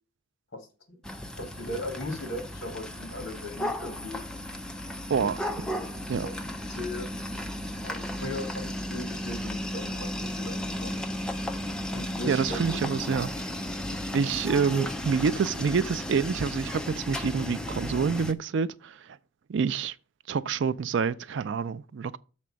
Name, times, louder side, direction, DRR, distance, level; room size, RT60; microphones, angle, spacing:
voice 1, 0.5-1.0 1.4-4.2 5.2-5.9 6.2-6.3 6.7-7.1 7.8-11.0 11.9-12.8, left 1 dB, 55° left, 2.0 m, -38 dB
sound 1, 1.0-18.3, left 1 dB, 5° left, 0.5 m, -34 dB
voice 2, 5.1-5.5 6.1-6.3 12.3-13.3 14.1-19.0 19.5-19.9 20.3-22.2, right 6 dB, 60° right, 0.3 m, -27 dB
6.8 x 4.2 x 6.2 m
head